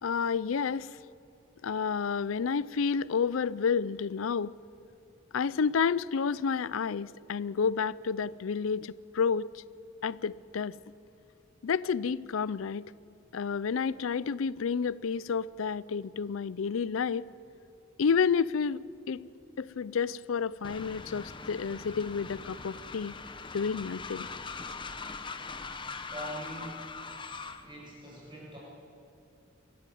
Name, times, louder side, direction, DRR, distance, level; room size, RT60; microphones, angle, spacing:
voice 1, 0.0-0.9 1.6-4.5 5.3-9.6 10.0-10.8 11.6-12.9 13.3-17.3 18.0-19.3 19.6-23.2 23.5-24.3, left 6 dB, 85° left, 20 dB, 0.4 m, -30 dB
Train, 20.6-27.7, left 4 dB, 25° left, 1.0 m, -42 dB
voice 2, 25.9-26.9 27.6-28.6, equal, 25° right, -4 dB, 7.4 m, -43 dB
24.0 x 14.0 x 9.2 m, 2.7 s
head